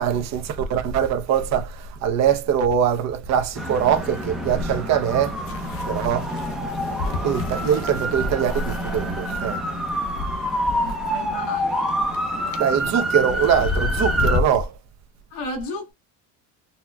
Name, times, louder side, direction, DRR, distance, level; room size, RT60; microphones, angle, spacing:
voice 1, 0.0-6.4 7.2-9.6 12.6-14.7, right 8 dB, 45° right, 0.7 m, -23 dB
sound 1, 3.3-14.7, left 4 dB, 40° left, 0.6 m, -32 dB
sound 2, 3.6-14.4, equal, ahead, 0.6 m, -27 dB
voice 2, 10.8-11.9 12.3-12.9 15.3-15.9, left 2 dB, 80° left, 1.5 m, -34 dB
4.1 x 2.2 x 2.3 m
cardioid pair, 145°, 36 cm